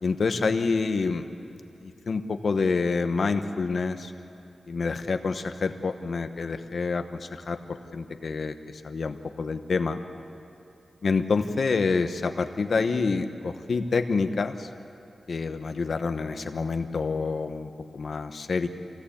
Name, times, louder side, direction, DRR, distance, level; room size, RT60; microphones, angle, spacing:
voice 1, 0.0-4.1 4.7-10.0 11.0-14.7 15.3-18.7, left 4 dB, 55° left, 7 dB, 1.0 m, -27 dB
25.5 x 17.5 x 8.6 m, 2.6 s
wide cardioid pair, 155°, 0 cm